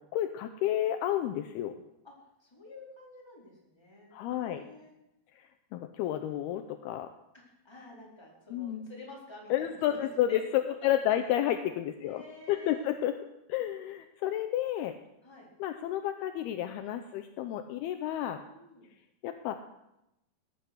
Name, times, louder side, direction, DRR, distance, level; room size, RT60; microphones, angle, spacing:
voice 1, 0.0-1.7 4.1-4.6 5.4-7.1 8.5-8.9 9.5-12.2 12.5-13.2 13.5-15.0 15.6-18.4 19.2-19.7, left 12 dB, 80° left, 8 dB, 2.5 m, -31 dB
voice 2, 2.4-4.9 7.5-9.8 10.2-10.4 10.8-10.9 11.2-11.3 12.0-12.9 15.2-15.5 18.5-18.9, left 1 dB, 5° left, -3 dB, 3.9 m, -50 dB
18.5 x 10.5 x 6.2 m, 0.87 s
omnidirectional pair, 4.9 m